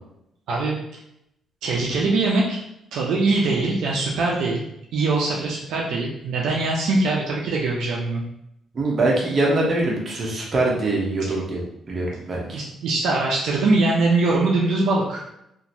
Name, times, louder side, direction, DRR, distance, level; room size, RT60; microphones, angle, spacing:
voice 1, 1.6-2.6 2.9-8.2 11.2-11.3 12.5-15.2, right 3 dB, 80° right, -2 dB, 0.5 m, -22 dB
voice 2, 8.7-11.6 11.9-12.6, right 2 dB, 40° right, -2 dB, 0.8 m, -23 dB
2.8 x 2.5 x 2.6 m, 0.79 s
cardioid pair, 90°, 0 cm